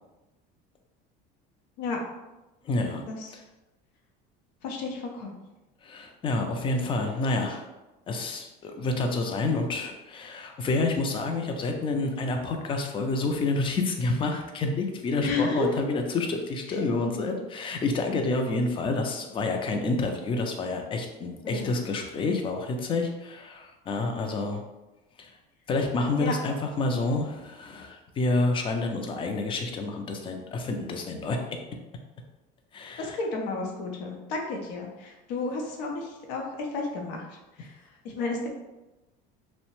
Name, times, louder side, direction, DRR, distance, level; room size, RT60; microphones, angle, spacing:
voice 1, 2.6-3.0 5.8-7.6 8.1-24.6 25.2-25.3 25.7-31.4 32.7-33.2, left 2 dB, 25° left, 4 dB, 0.4 m, -28 dB
voice 2, 4.6-5.3 15.2-15.7 16.7-16.8 21.4-21.8 26.2-26.3 33.0-38.6, left 3 dB, 85° left, 0 dB, 0.6 m, -32 dB
2.7 x 2.1 x 2.9 m, 1.0 s
cardioid pair, 125°, 21 cm